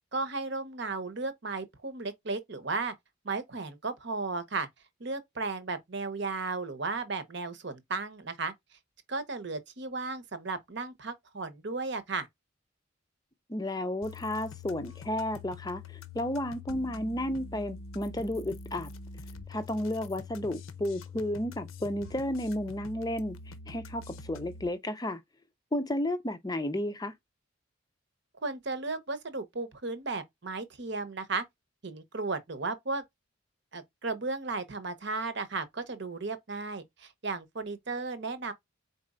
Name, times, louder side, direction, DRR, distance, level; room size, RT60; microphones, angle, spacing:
voice 1, 0.1-2.9 3.2-4.7 5.0-8.5 9.1-12.3 28.4-31.4 31.8-33.0 33.7-38.5, right 3 dB, 55° right, 0.9 m, -35 dB
voice 2, 13.5-18.9 19.5-25.2 25.7-27.1, left 1 dB, 20° left, 0.5 m, -32 dB
sound 1, 14.0-24.7, left 4 dB, 75° left, 0.7 m, -45 dB
4.3 x 4.1 x 2.4 m
head